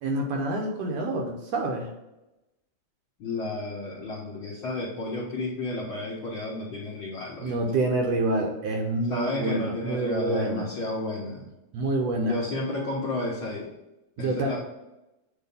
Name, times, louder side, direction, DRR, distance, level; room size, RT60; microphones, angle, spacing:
voice 1, 0.0-1.9 7.4-10.6 11.7-12.4 14.2-14.6, right 2 dB, 70° right, 1 dB, 1.7 m, -27 dB
voice 2, 3.2-7.5 9.1-11.5 12.3-13.7 14.2-14.6, left 2 dB, 60° left, -6 dB, 1.3 m, -32 dB
8.0 x 2.7 x 5.3 m, 0.96 s
omnidirectional pair, 3.4 m